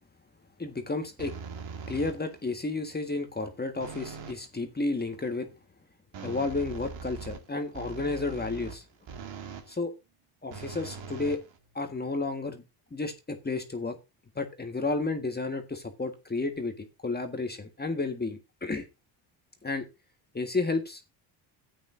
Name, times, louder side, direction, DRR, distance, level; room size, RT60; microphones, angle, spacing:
voice 1, 0.6-1.4 1.9-5.5 6.2-8.8 9.7-9.9 10.4-11.4 11.8-12.6 12.9-14.0 14.4-18.9 19.6-19.9 20.3-21.1, left 3 dB, 20° left, 6 dB, 1.6 m, -32 dB
sound 1, 1.2-2.4 3.8-4.5 6.1-9.7 10.5-12.0, right 5 dB, 60° right, 2.3 m, -42 dB
13.5 x 8.6 x 2.6 m, 0.25 s
cardioid pair, 85°, 50 cm